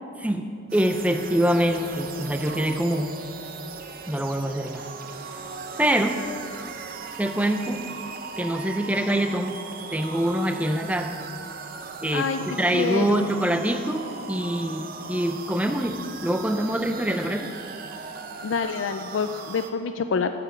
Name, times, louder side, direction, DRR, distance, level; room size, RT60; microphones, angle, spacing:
voice 1, 0.2-3.1 4.1-4.8 5.8-6.2 7.2-7.8 8.4-9.5 9.9-11.2 12.0-17.5, right 1 dB, 5° right, 7 dB, 0.4 m, -25 dB
sound 1, 0.7-19.7, right 4 dB, 45° right, 0.6 m, -38 dB
voice 2, 12.1-13.3 18.4-20.3, left 5 dB, 70° left, 8 dB, 0.4 m, -27 dB
9.5 x 6.9 x 7.8 m, 2.6 s
head